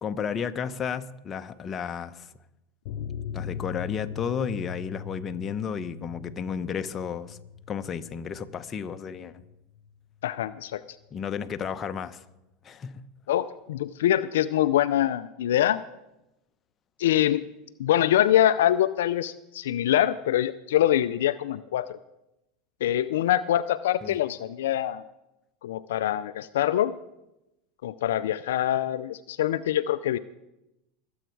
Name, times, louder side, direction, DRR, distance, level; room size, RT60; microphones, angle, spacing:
voice 1, 0.0-2.3 3.3-7.4 7.7-9.4 11.1-12.2 12.6-13.0 24.0-24.2, left 7 dB, 30° left, 0.9 m, -32 dB
sound 1, 2.8-10.0 10.2-10.3 10.6-10.7, left 8 dB, 65° left, 0.8 m, -40 dB
voice 2, 10.2-10.8 13.3-15.8 17.0-17.4 17.8-21.9 22.8-25.0 25.6-26.9 27.8-30.2, left 12 dB, 80° left, 0.4 m, -24 dB
23.0 x 8.1 x 4.7 m
hypercardioid pair, 100°, 0 cm